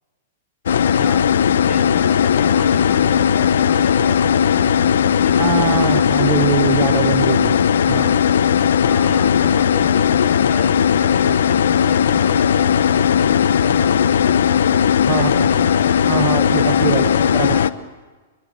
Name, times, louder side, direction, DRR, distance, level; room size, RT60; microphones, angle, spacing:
sound 1, 0.7-17.7, left 8 dB, 75° left, 0.8 m, -16 dB
voice 1, 0.7-1.3 1.5-5.6 5.9-6.1 8.7-14.9 15.2-17.7, equal, 5° right, 3 dB, 6.1 m, -36 dB
voice 2, 5.4-7.6 7.9-8.1 15.1-15.5 16.1-17.6, right 17 dB, 40° right, 14 dB, 0.7 m, -23 dB
24.0 x 23.0 x 7.6 m, 1.3 s
hypercardioid pair, 115°, 0 cm